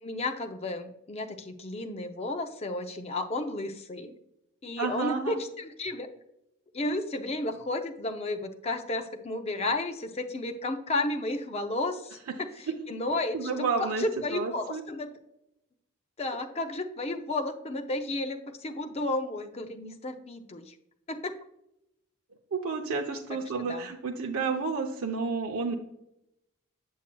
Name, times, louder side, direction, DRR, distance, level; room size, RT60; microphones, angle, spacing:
voice 1, 0.0-4.1 4.6-6.1 6.7-15.2 16.2-20.7 21.1-21.4 23.6-23.9, left 2 dB, 30° left, 6 dB, 0.5 m, -33 dB
voice 2, 4.8-5.4 13.3-14.0 14.3-14.8 22.5-25.8, right 4 dB, 75° right, 2 dB, 0.6 m, -30 dB
7.3 x 7.2 x 2.2 m, 0.83 s
head